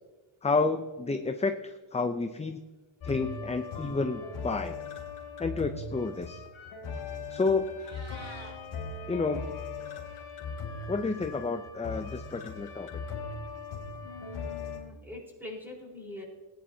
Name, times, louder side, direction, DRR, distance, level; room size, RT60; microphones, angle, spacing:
voice 1, 0.4-2.6 3.0-4.7 5.4-6.4 7.3-7.7 9.1-9.4 10.9-12.9, left 3 dB, 15° left, 7 dB, 0.4 m, -30 dB
sound 1, 3.0-14.8, left 4 dB, 75° left, 3.0 m, -39 dB
Meow, 7.6-8.5, right 1 dB, 30° right, 3.3 m, -47 dB
voice 2, 14.0-16.2, left 2 dB, 5° right, -2 dB, 4.0 m, -43 dB
19.0 x 10.0 x 2.8 m, 1.3 s
wide cardioid pair, 130°, 49 cm